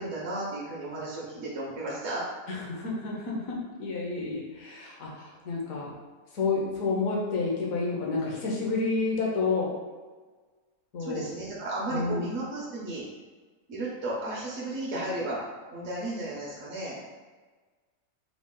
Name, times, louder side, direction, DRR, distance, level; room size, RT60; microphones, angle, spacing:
voice 1, 0.0-2.2 11.0-13.0 13.7-15.4 15.7-17.0, right 2 dB, 60° right, -6 dB, 1.0 m, -34 dB
voice 2, 2.5-5.9 6.3-9.7 10.9-11.3 11.9-12.2, left 3 dB, 65° left, -3 dB, 1.2 m, -30 dB
3.8 x 2.3 x 3.6 m, 1.4 s
omnidirectional pair, 1.6 m